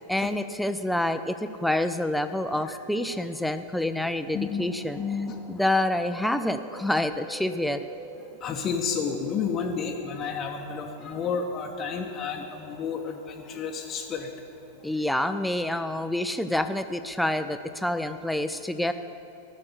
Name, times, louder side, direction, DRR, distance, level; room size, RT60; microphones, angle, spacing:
voice 1, 0.1-1.4 1.6-5.0 5.5-7.8 14.8-18.9, left 1 dB, ahead, 9 dB, 0.5 m, -27 dB
sound 1, 4.2-15.5, equal, 20° right, 1.3 m, -49 dB
voice 2, 5.0-5.4 8.4-14.3, left 6 dB, 30° left, 1 dB, 0.9 m, -31 dB
13.0 x 6.4 x 8.1 m, 2.6 s
figure-of-eight pair, 90°, 0 cm